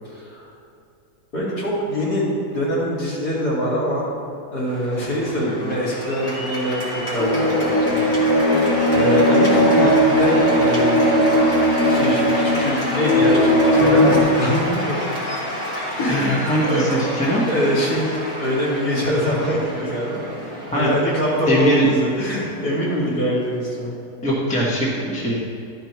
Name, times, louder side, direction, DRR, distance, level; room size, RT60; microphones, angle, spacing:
voice 1, 0.0-0.5 1.3-4.1 4.5-6.8 7.1-8.0 8.9-11.1 11.9-15.0 16.0-17.1 17.5-20.3 20.7-23.9, equal, 70° left, -7 dB, 3.0 m, -23 dB
Cheering / Applause, 4.7-23.9, equal, 30° left, 2.0 m, -29 dB
sound 1, 7.2-14.2, equal, 55° left, 2.3 m, -17 dB
voice 2, 16.1-17.4 20.7-20.9 21.5-21.9 24.2-25.4, right 1 dB, 5° left, -6 dB, 1.1 m, -21 dB
12.0 x 5.2 x 4.5 m, 2.5 s
omnidirectional pair, 1.7 m